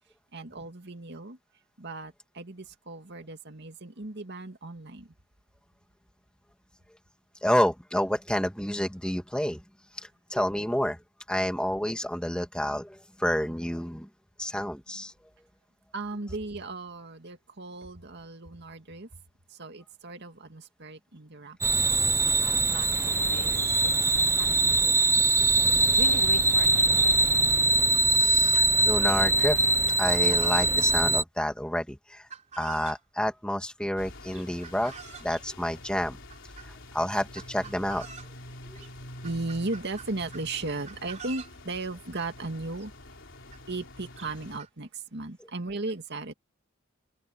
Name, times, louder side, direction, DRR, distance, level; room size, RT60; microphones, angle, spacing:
voice 1, 0.3-1.4 1.8-5.1 15.9-19.1 19.5-21.6 21.8-25.3 25.6-27.6 38.7-38.8 39.2-42.9 43.7-46.3, right 2 dB, 60° right, 2.2 m, -37 dB
voice 2, 7.4-9.6 10.3-11.0 11.3-14.1 14.4-15.1 28.2-29.6 30.0-32.2 32.6-34.9 35.2-36.2 36.9-38.1, equal, 5° left, 2.3 m, -29 dB
sound 1, 21.6-31.2, right 2 dB, 15° right, 0.7 m, -22 dB
Chicken rooster, 27.3-27.4 27.8-29.2 29.9-31.0 32.3-33.0 34.3-35.4 36.3-36.7 37.1-38.4 38.8-38.9 39.2-40.5 40.8-41.6 42.5-42.6 42.8-42.9 43.5-43.6 44.2-44.7, right 7 dB, 35° right, 3.8 m, -45 dB
sound 2, 34.0-44.6, left 1 dB, 70° left, 4.1 m, -47 dB
head